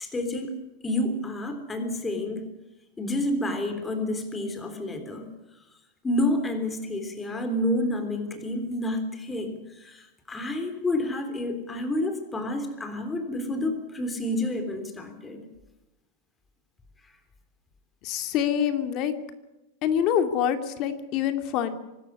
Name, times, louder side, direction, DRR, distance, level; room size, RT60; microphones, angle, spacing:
voice 1, 0.0-2.5 3.0-5.3 6.0-15.5, left 1 dB, 10° left, 6 dB, 3.5 m, -29 dB
voice 2, 18.0-19.1 19.8-21.7, left 9 dB, 40° left, 8 dB, 2.4 m, -25 dB
24.5 x 12.5 x 9.7 m, 1.0 s
supercardioid pair, 155°, 0 cm